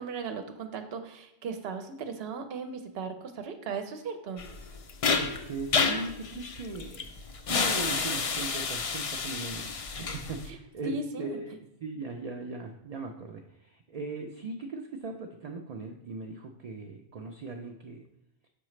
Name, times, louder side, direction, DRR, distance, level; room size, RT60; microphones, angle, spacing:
voice 1, 0.0-4.4 10.5-10.6 10.8-11.4, right 4 dB, 75° right, 7 dB, 0.8 m, -37 dB
sound 1, 4.4-10.5, left 5 dB, 50° left, 0.4 m, -30 dB
voice 2, 5.1-7.1 7.4-9.7 10.0-18.1, right 3 dB, 55° right, 3 dB, 0.4 m, -39 dB
6.8 x 4.8 x 3.1 m, 0.82 s
omnidirectional pair, 1.1 m